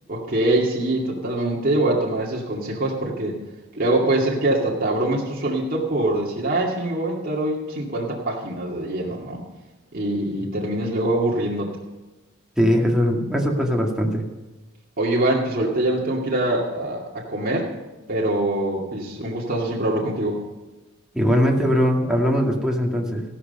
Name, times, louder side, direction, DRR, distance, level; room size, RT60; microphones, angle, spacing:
voice 1, 0.1-3.4 3.7-9.5 9.9-11.7 15.0-17.7 18.1-20.4, right 1 dB, 45° right, -3 dB, 2.4 m, -24 dB
voice 2, 12.6-14.2 21.1-23.2, equal, 5° right, -1 dB, 2.1 m, -20 dB
14.5 x 13.0 x 5.5 m, 1.2 s
head